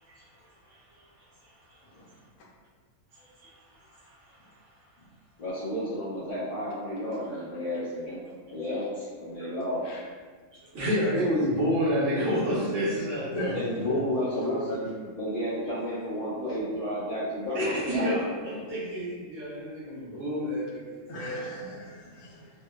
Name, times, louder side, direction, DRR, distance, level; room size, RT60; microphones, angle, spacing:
voice 1, 3.2-4.4 10.7-13.6 17.5-21.4, equal, 65° right, -8 dB, 1.1 m, -29 dB
voice 2, 5.4-8.2 8.5-9.8 13.5-14.9 15.2-18.1 18.5-18.7 19.9-20.2, left 1 dB, 55° left, -11 dB, 0.4 m, -32 dB
voice 3, 13.2-13.5 13.9-14.0 14.4-14.9 21.1-22.5, left 1 dB, 80° left, -4 dB, 1.1 m, -36 dB
2.9 x 2.1 x 2.2 m, 1.5 s
omnidirectional pair, 1.6 m